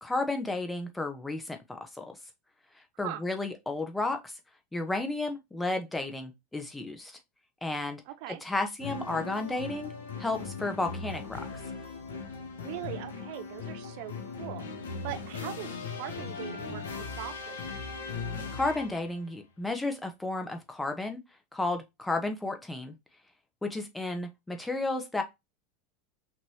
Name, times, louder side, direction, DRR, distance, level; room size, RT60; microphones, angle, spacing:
voice 1, 0.0-2.2 3.0-4.3 4.7-7.2 7.6-8.0 8.3-9.9 10.2-11.5 18.5-21.2 21.5-23.0 23.6-25.2, left 2 dB, 10° left, 1.1 m, -32 dB
voice 2, 8.1-8.4 12.6-14.7 15.0-17.8, right 14 dB, 55° right, 0.5 m, -41 dB
sound 1, 8.8-19.2, left 4 dB, 65° left, 1.2 m, -39 dB
5.9 x 3.1 x 2.9 m
figure-of-eight pair, 80°, 0 cm